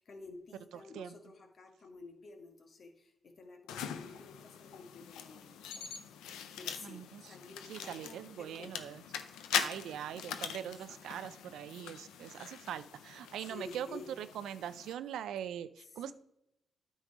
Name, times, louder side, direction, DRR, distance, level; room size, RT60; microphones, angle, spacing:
voice 1, 0.0-3.1 3.4-5.6 6.6-9.0 10.9-11.0 13.4-14.1 15.8-16.1, left 3 dB, 60° left, 4 dB, 1.6 m, -51 dB
sound 1, 3.7-14.9, left 8 dB, 90° left, 0.5 m, -42 dB
voice 2, 6.8-7.2 7.7-9.0 9.5-16.1, right 10 dB, 80° right, 14 dB, 0.4 m, -42 dB
9.0 x 5.3 x 4.8 m, 0.83 s
supercardioid pair, 55°, 0 cm